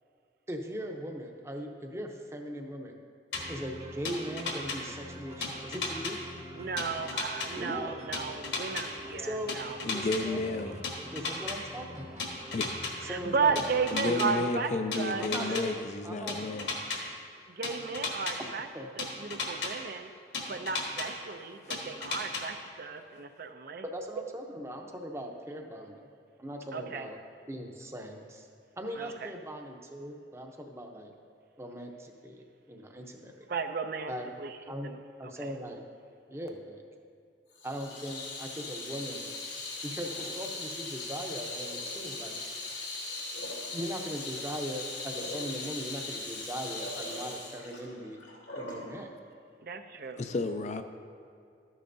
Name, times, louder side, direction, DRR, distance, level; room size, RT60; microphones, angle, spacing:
voice 1, 0.5-3.0 3.5-6.2 7.6-8.0 9.2-9.6 9.9-10.5 11.1-12.2 13.0-13.6 14.0-14.5 15.2-16.4 18.7-18.9 23.8-26.1 26.4-27.2 27.5-28.5 28.8-31.1 31.6-33.5 34.1-34.3 34.6-34.9 35.2-35.8 36.3-36.8 37.6-39.3 39.8-42.4 43.7-48.2 48.5-49.2, equal, 15° right, 3 dB, 0.7 m, -39 dB
sound 1, 3.3-3.4 4.0-4.8 5.4-6.1 6.8-7.5 8.1-8.8 9.5-10.2 10.8-11.6 12.2-12.9 13.6-14.3 14.9-15.6 16.3-17.0 17.6-18.3 19.0-19.7 20.3-21.1 21.7-22.4, left 4 dB, 65° left, 1.5 m, -34 dB
sound 2, 3.3-14.0, equal, 35° right, 1.0 m, -46 dB
voice 2, 6.5-9.8 13.1-15.6 17.6-18.7 19.0-20.1 20.5-23.8 26.7-27.1 29.0-29.1 33.5-34.1 34.4-34.5 34.8-35.0 35.4-35.5 49.6-50.2, right 5 dB, 55° right, 8 dB, 0.5 m, -34 dB
voice 3, 9.8-10.8 12.5-12.7 13.9-16.7 50.2-50.8, left 2 dB, 40° left, 8 dB, 0.4 m, -32 dB
Water tap faucet / Sink (filling or washing), 37.5-48.9, left 2 dB, 90° left, 2.5 m, -39 dB
13.0 x 10.0 x 2.7 m, 2.5 s
head